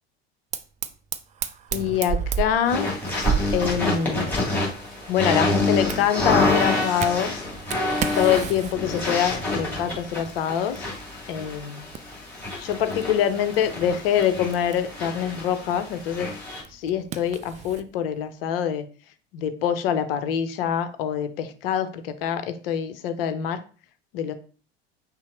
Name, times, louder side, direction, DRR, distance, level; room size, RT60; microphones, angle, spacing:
Fire, 0.5-17.9, right 7 dB, 25° right, 0.4 m, -35 dB
voice 1, 1.7-2.9 3.5-4.3 5.1-7.3 8.2-10.9 11.3-11.9 12.6-16.3 16.7-18.9 19.3-23.6 24.1-24.3, left 9 dB, 65° left, 10 dB, 0.7 m, -25 dB
sound 1, 2.7-16.6, left 2 dB, 5° left, 2.2 m, -27 dB
5.6 x 2.0 x 4.4 m, 0.39 s
figure-of-eight pair, 70°, 31 cm